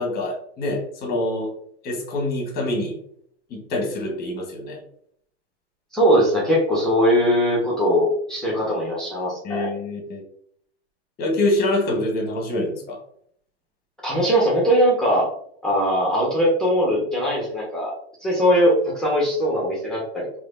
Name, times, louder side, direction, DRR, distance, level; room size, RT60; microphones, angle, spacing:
voice 1, 0.0-1.5 1.8-3.0 3.5-4.8 9.4-10.2 11.2-13.0, left 1 dB, 25° left, 1 dB, 1.2 m, -25 dB
voice 2, 5.9-9.7 14.0-15.3 15.6-17.9 18.2-20.3, equal, ahead, -5 dB, 1.2 m, -20 dB
4.8 x 2.8 x 2.6 m, 0.64 s
hypercardioid pair, 130°, 34 cm